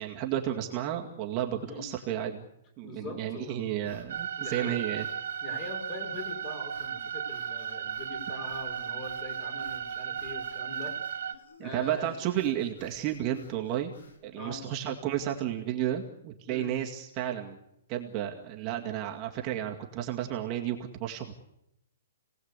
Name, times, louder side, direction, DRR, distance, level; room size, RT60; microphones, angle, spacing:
voice 1, 0.0-2.5 2.8-5.1 11.6-13.9 14.2-17.6 17.9-21.4, right 11 dB, 25° right, 0 dB, 2.2 m, -32 dB
voice 2, 2.8-3.7 4.4-4.8 5.4-12.1 14.4-14.6 16.5-16.7, left 3 dB, 25° left, 5 dB, 5.4 m, -43 dB
sound 1, 3.8-14.2, left 2 dB, 85° left, 7.4 m, -55 dB
sound 2, 4.1-11.3, right 8 dB, 65° right, 2.1 m, -35 dB
30.0 x 18.5 x 8.3 m, 0.86 s
hypercardioid pair, 165°, 0 cm